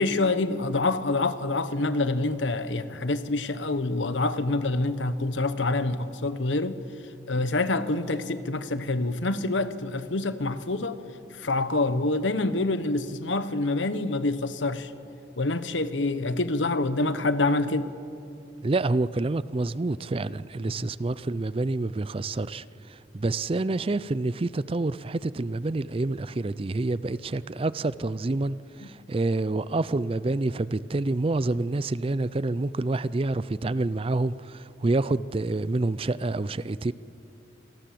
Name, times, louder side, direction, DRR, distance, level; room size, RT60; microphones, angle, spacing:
voice 1, 0.0-6.8 7.3-11.0 11.3-14.9 15.4-17.9 20.8-20.9, left 2 dB, 85° left, 1.2 m, -26 dB
voice 2, 18.6-36.9, right 2 dB, 30° right, 0.4 m, -28 dB
27.0 x 18.5 x 7.7 m
head